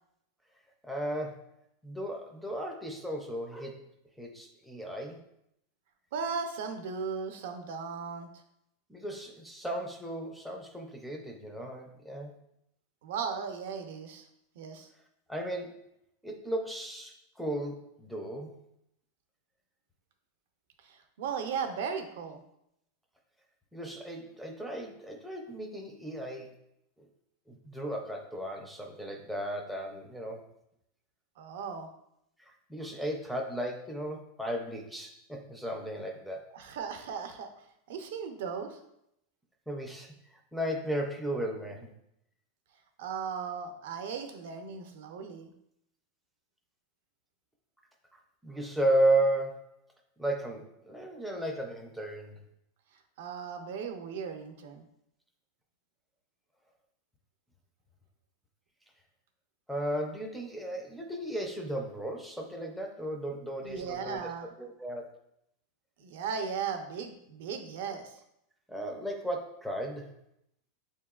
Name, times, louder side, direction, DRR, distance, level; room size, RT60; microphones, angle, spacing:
voice 1, 0.8-1.4 1.8-3.8 4.2-5.2 8.9-12.3 15.3-15.7 16.2-18.5 23.7-26.5 27.5-30.4 32.4-36.4 39.7-41.9 48.4-49.8 50.2-52.4 59.7-64.3 64.6-65.1 68.7-70.1, right 1 dB, ahead, 2 dB, 0.4 m, -34 dB
voice 2, 6.1-8.3 13.0-14.3 14.6-14.9 20.8-22.4 31.4-31.9 36.5-37.5 37.9-38.8 43.0-45.5 53.2-54.8 63.6-64.5 66.0-68.2, right 6 dB, 60° right, 6 dB, 0.5 m, -37 dB
6.6 x 2.8 x 2.3 m, 0.78 s
supercardioid pair, 175°, 0 cm